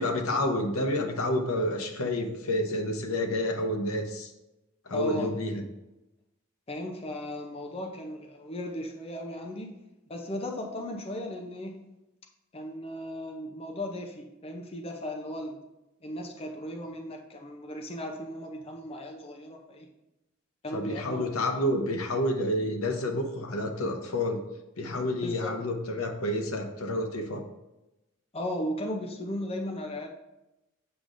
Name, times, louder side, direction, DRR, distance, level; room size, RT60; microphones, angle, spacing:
voice 1, 0.0-4.3 4.8-5.6 20.7-24.4 24.8-27.4, left 1 dB, 85° left, 4 dB, 0.8 m, -29 dB
voice 2, 4.9-5.3 6.7-9.8 10.1-11.8 12.5-15.6 16.0-19.9 20.6-21.2 25.2-25.5 28.3-30.1, left 1 dB, 30° left, 2 dB, 0.6 m, -36 dB
7.9 x 4.9 x 2.6 m, 0.96 s
head